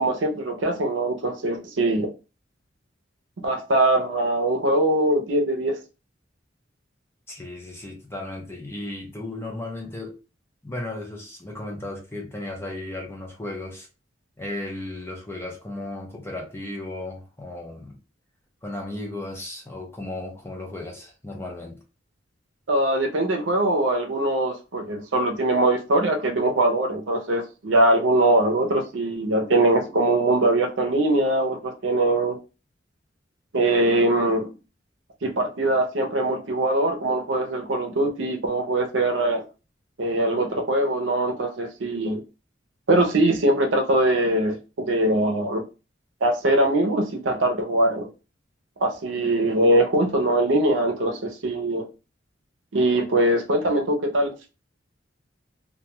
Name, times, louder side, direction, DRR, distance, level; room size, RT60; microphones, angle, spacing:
voice 1, 0.0-2.1 3.4-5.8 22.7-32.4 33.5-34.5 35.2-39.4 40.0-42.2 42.9-45.6 46.2-48.1 48.8-51.9 52.7-54.3, right 1 dB, 85° right, 0.6 m, -22 dB
voice 2, 7.3-10.1 10.6-13.9 14.4-18.0 18.6-21.8, left 2 dB, 15° left, 0.6 m, -35 dB
2.3 x 2.2 x 2.9 m
head